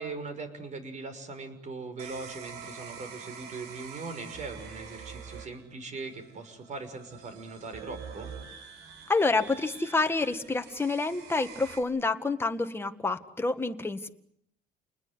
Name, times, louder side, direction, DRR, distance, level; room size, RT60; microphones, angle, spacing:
voice 1, 0.0-8.3, right 3 dB, 45° right, 9 dB, 6.3 m, -40 dB
sound 1, 2.0-11.8, right 6 dB, 90° right, 5.2 m, -46 dB
voice 2, 9.1-14.1, left 3 dB, 15° left, 7 dB, 1.8 m, -28 dB
30.0 x 20.5 x 9.8 m, 0.72 s
cardioid pair, 110°, 17 cm